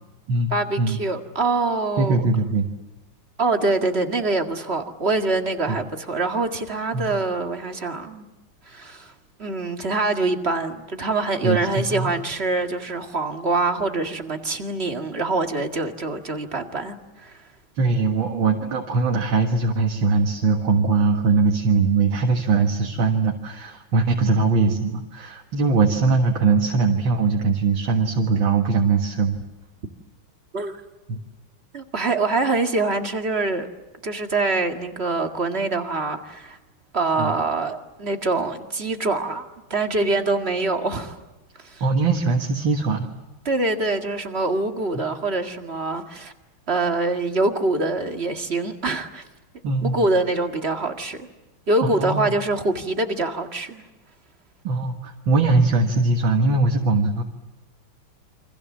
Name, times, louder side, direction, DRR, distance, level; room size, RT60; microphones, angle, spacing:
voice 1, 0.5-2.3 3.4-8.3 8.7-9.1 9.4-17.4 30.5-30.8 31.7-33.7 34.0-36.6 36.9-41.2 41.6-41.8 43.5-46.3 46.7-49.2 49.8-51.3 51.7-53.8, right 3 dB, 30° right, 2.0 m, -24 dB
voice 2, 2.0-2.7 5.7-5.8 6.9-7.1 11.4-12.1 17.8-29.3 31.1-31.2 37.2-37.3 41.8-43.1 44.9-45.0 49.6-50.0 51.8-52.3 54.6-57.2, right 4 dB, 65° right, 2.4 m, -21 dB
29.0 x 25.0 x 7.3 m
omnidirectional pair, 2.4 m